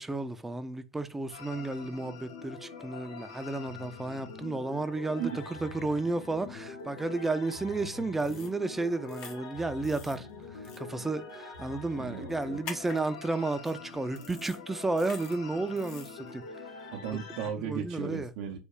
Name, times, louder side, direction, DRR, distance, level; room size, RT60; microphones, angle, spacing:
voice 1, 0.0-10.3 10.8-16.4 17.6-18.3, right 2 dB, 10° right, 0.4 m, -32 dB
sound 1, 1.3-17.5, left 5 dB, 85° left, 1.0 m, -45 dB
sound 2, 8.2-8.5 9.1-9.4 9.8-10.1 10.6-10.8 12.6-13.0 13.6-13.7 14.2-14.6 15.0-15.4 15.7-16.1, left 5 dB, 60° left, 0.9 m, -45 dB
voice 2, 12.0-12.6 16.9-18.6, right 8 dB, 70° right, 0.5 m, -36 dB
3.2 x 2.2 x 3.6 m
hypercardioid pair, 75°, 2 cm